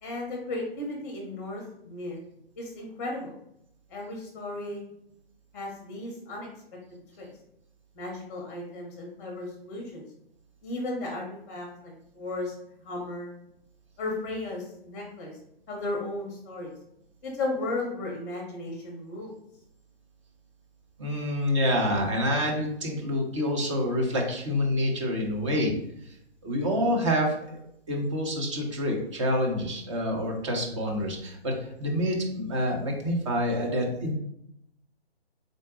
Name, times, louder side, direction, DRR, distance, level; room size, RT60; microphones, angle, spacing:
voice 1, 0.0-2.2 2.6-3.3 3.9-4.8 5.5-6.5 6.9-7.3 7.9-10.0 10.6-12.5 12.8-13.3 14.0-15.4 15.7-16.7 17.2-19.3, left 2 dB, 15° left, 0 dB, 0.8 m, -35 dB
voice 2, 21.0-25.7 26.4-27.6 27.9-34.1, equal, 30° right, 1 dB, 0.8 m, -27 dB
3.8 x 2.2 x 3.7 m, 0.75 s
figure-of-eight pair, 140°, 31 cm